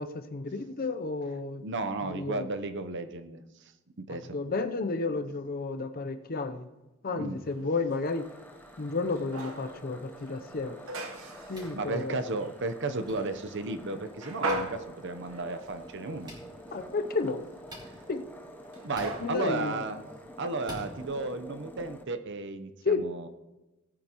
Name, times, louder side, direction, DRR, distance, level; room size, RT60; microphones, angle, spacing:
voice 1, 0.0-1.6 2.0-2.5 4.1-6.7 7.0-8.3 8.8-10.8 11.5-12.2 16.7-17.4 18.1-18.2 19.2-19.8 22.9-23.1, left 3 dB, 45° left, 9 dB, 0.7 m, -32 dB
voice 2, 1.6-3.7 4.1-4.3 7.1-7.4 11.2-11.3 11.7-16.3 17.9-18.0 18.8-20.0 20.4-23.3, right 3 dB, 60° right, 9 dB, 0.8 m, -34 dB
sound 1, 7.4-21.1, right 2 dB, 80° right, 1.2 m, -42 dB
sound 2, 8.0-22.0, equal, 10° left, 0.7 m, -48 dB
sound 3, 11.5-11.7 13.0-13.1 14.5-14.6 16.2-16.4 17.7-17.9 18.9-19.1 20.6-20.9, equal, 20° right, 3.4 m, -43 dB
18.5 x 9.0 x 3.0 m, 1.0 s
head